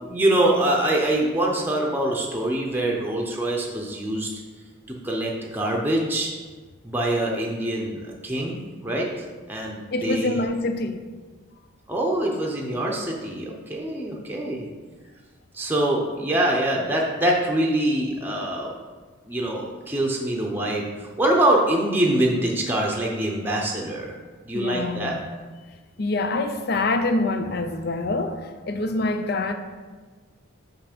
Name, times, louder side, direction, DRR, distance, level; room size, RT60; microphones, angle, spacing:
voice 1, 0.0-4.3 4.9-6.3 6.8-10.4 11.9-14.7 15.5-18.7 19.3-24.1 24.4-25.2, right 1 dB, 10° right, 0.7 m, -24 dB
voice 2, 9.9-11.0 24.5-25.2 26.0-29.5, left 2 dB, 50° left, 0.5 m, -25 dB
5.8 x 5.8 x 5.1 m
head